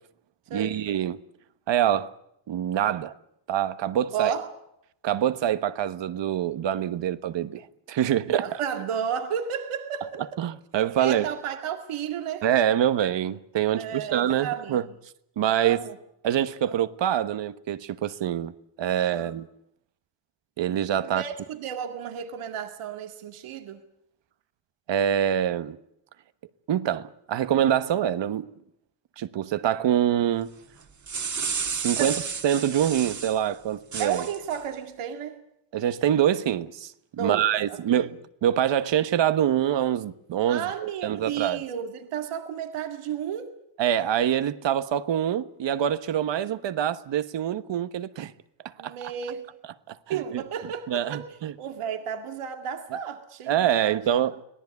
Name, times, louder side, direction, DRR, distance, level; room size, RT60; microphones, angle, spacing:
voice 1, 0.5-1.2 1.7-2.1 2.5-3.2 3.5-4.3 5.0-8.5 10.4-11.3 12.4-14.9 15.4-15.8 16.2-18.5 18.8-19.5 20.6-21.2 24.9-25.8 26.7-28.5 29.2-30.5 31.8-32.1 32.4-34.2 35.7-36.9 37.2-40.6 41.0-41.6 43.8-48.3 48.8-49.0 49.9-50.4 50.9-51.5 53.5-54.4, right 10 dB, 60° right, 1.2 m, -25 dB
voice 2, 4.1-4.6 8.4-10.4 11.0-12.5 13.7-14.8 15.5-16.0 16.7-16.8 19.1-19.3 21.0-23.8 31.9-32.2 34.0-35.4 37.2-38.1 40.5-43.6 48.8-49.5 50.1-54.4, right 8 dB, 80° right, 2.2 m, -33 dB
sound 1, 30.8-33.4 33.9-34.6, right 6 dB, 35° right, 2.0 m, -31 dB
25.5 x 18.0 x 8.3 m
cardioid pair, 100°, 50 cm